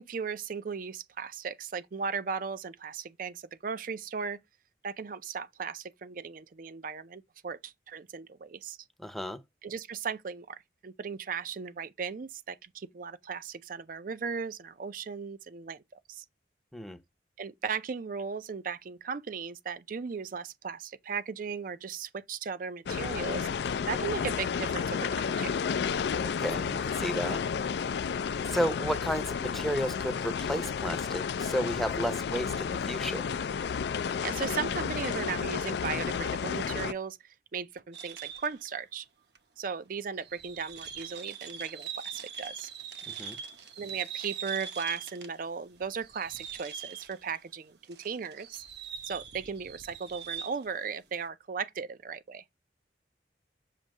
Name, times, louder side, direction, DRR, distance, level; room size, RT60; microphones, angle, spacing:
voice 1, 0.0-4.4 4.8-8.8 9.6-16.2 17.4-25.6 34.2-37.2 37.5-39.1 39.6-42.7 43.8-48.6 49.1-52.4, right 6 dB, 50° right, 0.5 m, -37 dB
voice 2, 9.0-9.4 16.7-17.0 26.2-27.4 28.5-33.3 43.1-43.4, equal, ahead, 0.6 m, -32 dB
sound 1, 22.9-36.9, left 6 dB, 65° left, 0.3 m, -32 dB
sound 2, 37.9-38.6 39.4-39.5 40.1-45.4 45.8-47.4 47.8-50.7, right 7 dB, 65° right, 0.9 m, -42 dB
7.4 x 2.7 x 5.2 m
head